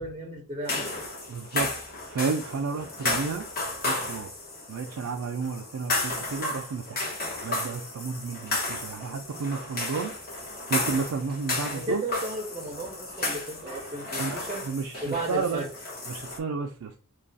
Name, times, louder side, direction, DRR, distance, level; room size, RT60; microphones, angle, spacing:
voice 1, 0.0-1.1 11.7-14.6 15.0-15.7, right 1 dB, 25° right, 0.6 m, -34 dB
sound 1, 0.7-16.4, left 2 dB, 45° left, 1.2 m, -33 dB
voice 2, 1.3-1.7 2.1-3.4 3.8-4.3 4.7-7.0 7.4-10.1 10.7-12.0 14.2-15.6 16.1-16.9, right 5 dB, 85° right, 0.4 m, -32 dB
3.2 x 2.3 x 4.0 m
head